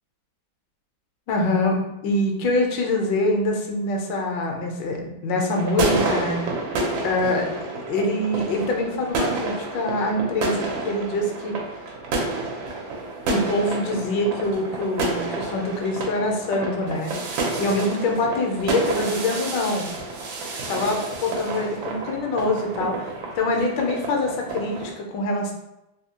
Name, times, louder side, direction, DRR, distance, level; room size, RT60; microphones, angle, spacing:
voice 1, 1.3-6.7 7.0-11.6 13.3-17.2 17.6-19.9 20.7-25.5, left 2 dB, 75° left, 1 dB, 1.3 m, -25 dB
sound 1, 5.5-24.9, right 3 dB, 85° right, 1.5 m, -29 dB
3.5 x 2.6 x 2.8 m, 0.90 s
omnidirectional pair, 2.1 m